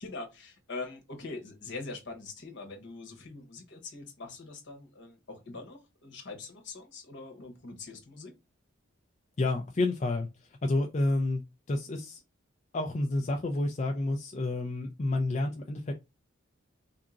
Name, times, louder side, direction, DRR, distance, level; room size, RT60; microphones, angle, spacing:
voice 1, 0.0-8.3, left 3 dB, 60° left, 1.2 m, -43 dB
voice 2, 9.4-10.3 10.6-11.4 11.7-12.2 12.7-15.9, left 2 dB, 35° left, 0.5 m, -29 dB
3.6 x 2.8 x 3.7 m
head